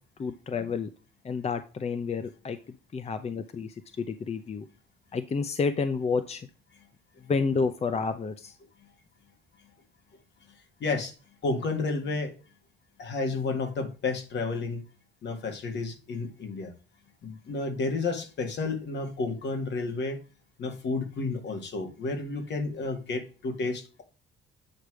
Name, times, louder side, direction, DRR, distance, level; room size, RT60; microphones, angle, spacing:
voice 1, 0.2-0.9 1.2-2.6 2.9-4.6 5.1-6.5 7.3-8.5, left 5 dB, 30° left, 0.6 m, -30 dB
voice 2, 10.8-11.1 11.4-12.3 13.0-14.8 15.2-16.7 17.2-20.2 20.6-24.0, left 3 dB, 60° left, 2.0 m, -31 dB
8.5 x 3.2 x 6.2 m
cardioid pair, 90°, 20 cm